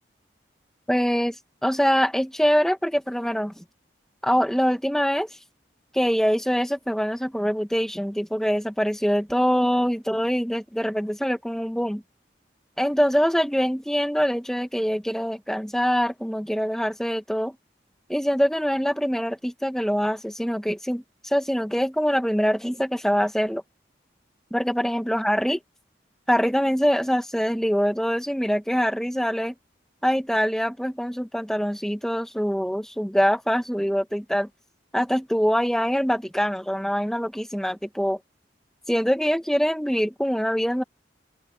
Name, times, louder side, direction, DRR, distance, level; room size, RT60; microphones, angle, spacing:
voice 1, 0.9-1.3 1.6-3.6 4.2-5.3 5.9-12.0 12.8-17.5 18.1-23.6 24.5-25.6 26.3-29.5 30.0-34.5 34.9-38.2 38.9-40.8, equal, 5° left, 1.6 m, -24 dB
open air
head